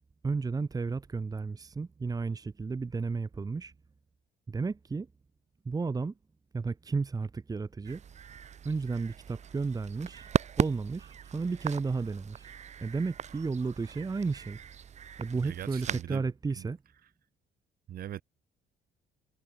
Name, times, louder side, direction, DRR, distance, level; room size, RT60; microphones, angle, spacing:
voice 1, 0.2-3.7 4.5-5.1 5.6-6.1 6.5-8.0 8.6-10.3 10.6-12.5 12.8-14.6 15.2-16.8, right 4 dB, 20° right, 1.7 m, -33 dB
sound 1, 7.8-16.0, right 8 dB, 40° right, 1.6 m, -37 dB
voice 2, 15.3-16.3 16.6-16.7 17.9-18.2, right 11 dB, 60° right, 4.4 m, -40 dB
cardioid pair, 110°, 17 cm